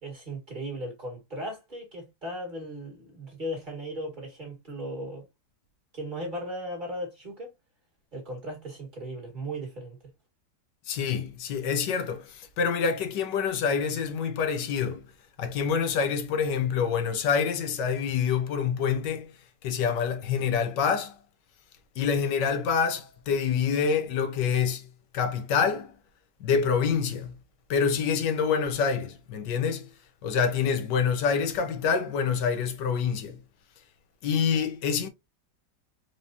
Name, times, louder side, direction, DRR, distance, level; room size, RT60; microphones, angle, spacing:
voice 1, 0.0-5.3 5.9-7.5 8.1-10.0, right 1 dB, 30° right, 2.1 m, -37 dB
voice 2, 10.9-15.0 15.4-19.3 19.6-21.1 22.0-24.9 25.1-25.9 26.4-27.4 27.7-29.9 30.2-33.4 34.2-35.1, left 6 dB, 85° left, 1.4 m, -26 dB
4.8 x 3.0 x 2.7 m
omnidirectional pair, 1.8 m